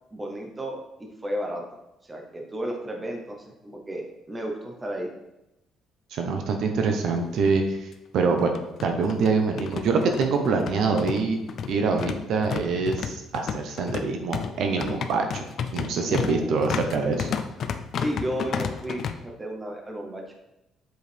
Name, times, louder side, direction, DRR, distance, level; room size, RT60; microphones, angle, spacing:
voice 1, 0.1-1.6 2.0-5.1 16.0-16.6 18.0-20.2, right 1 dB, 15° right, 1 dB, 0.8 m, -33 dB
voice 2, 6.1-7.6 8.1-8.5 8.8-11.4 11.7-15.4 15.7-17.3, right 4 dB, 55° right, 4 dB, 0.8 m, -25 dB
sound 1, 7.1-7.2 7.5-7.6 8.4-19.1, left 7 dB, 45° left, 0.4 m, -32 dB
7.9 x 4.8 x 3.4 m, 0.93 s
cardioid pair, 180°, 0 cm